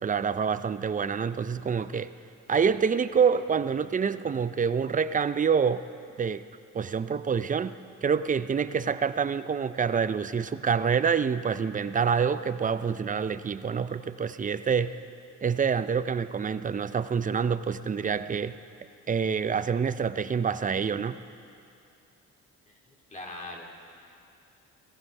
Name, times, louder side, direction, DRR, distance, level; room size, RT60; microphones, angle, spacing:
voice 1, 0.0-2.1 2.5-5.8 6.2-6.4 6.7-15.0 15.4-18.6 19.1-21.2, right 6 dB, 25° right, 12 dB, 0.6 m, -27 dB
voice 2, 23.1-24.1, left 2 dB, 25° left, 0 dB, 2.6 m, -42 dB
17.0 x 15.5 x 5.5 m, 2.5 s
cardioid pair, 90°, 30 cm